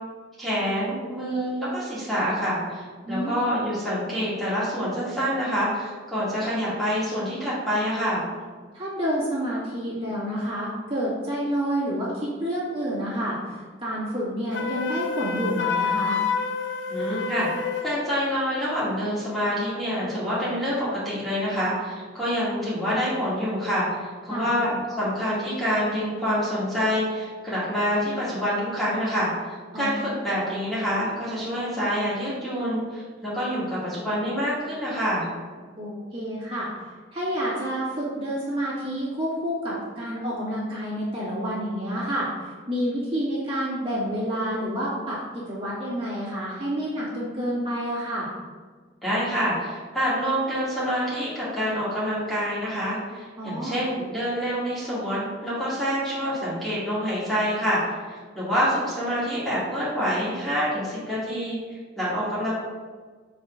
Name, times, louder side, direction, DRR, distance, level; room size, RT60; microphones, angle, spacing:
voice 1, 0.4-8.2 16.9-17.5 17.8-35.3 49.0-57.8 58.1-61.6 62.0-62.5, equal, ahead, -10 dB, 2.1 m, -27 dB
voice 2, 3.0-3.4 8.7-16.2 24.3-24.5 29.7-30.1 35.8-36.7 37.1-48.3 53.4-53.8, equal, 30° right, -8 dB, 2.1 m, -29 dB
Wind instrument woodwind instrument, 14.5-17.9, left 5 dB, 75° left, 0.7 m, -27 dB
6.9 x 5.0 x 3.8 m, 1.5 s
head